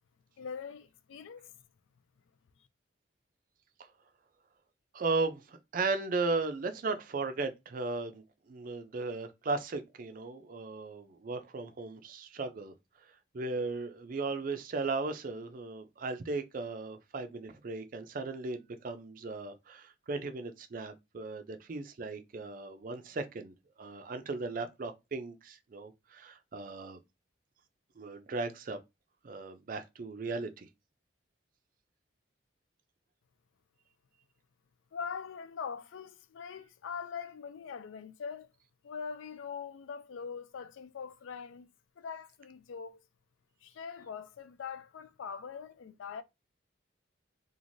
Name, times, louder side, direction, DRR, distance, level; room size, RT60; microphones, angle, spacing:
voice 1, 0.4-1.5 34.9-38.5 38.8-41.7 42.0-43.0 43.6-46.2, left 6 dB, 75° left, 0.4 m, -42 dB
voice 2, 4.9-12.7 13.3-27.0 28.0-28.8 29.2-30.7, right 3 dB, 45° right, 0.4 m, -36 dB
3.0 x 2.4 x 2.6 m
head